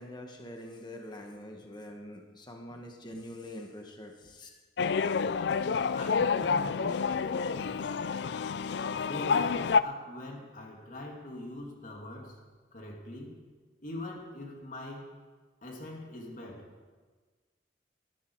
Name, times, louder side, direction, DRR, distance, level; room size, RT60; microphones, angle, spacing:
voice 1, 0.0-4.5, left 1 dB, 25° left, 2 dB, 1.5 m, -44 dB
sound 1, 4.8-9.8, left 5 dB, 65° left, 0.4 m, -28 dB
voice 2, 5.9-7.8 9.0-12.4 12.7-13.4 13.8-15.1 15.6-16.7, left 1 dB, 45° left, 0 dB, 2.6 m, -42 dB
19.0 x 12.0 x 4.8 m, 1.4 s
head